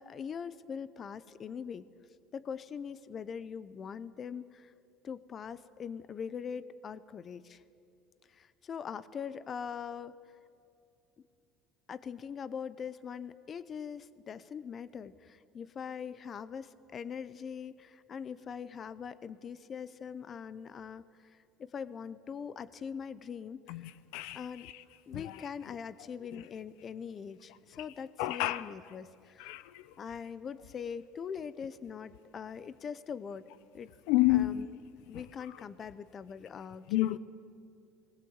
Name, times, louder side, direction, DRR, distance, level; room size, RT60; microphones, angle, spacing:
voice 1, 0.0-1.9 2.3-4.7 5.0-7.6 8.3-10.1 11.9-21.0 21.3-23.9 24.3-24.7 25.1-29.5 30.0-33.5 33.7-33.9 34.3-34.7 35.1-37.2, left 7 dB, 30° left, 0.6 m, -42 dB
voice 2, 23.7-24.8 25.1-25.8 26.3-26.4 27.7-27.8 28.2-28.7 29.4-29.9 34.1-34.6 35.1-35.6 36.9-37.2, left 16 dB, 80° left, 0.7 m, -31 dB
20.0 x 19.5 x 8.0 m
cardioid pair, 145°, 0 cm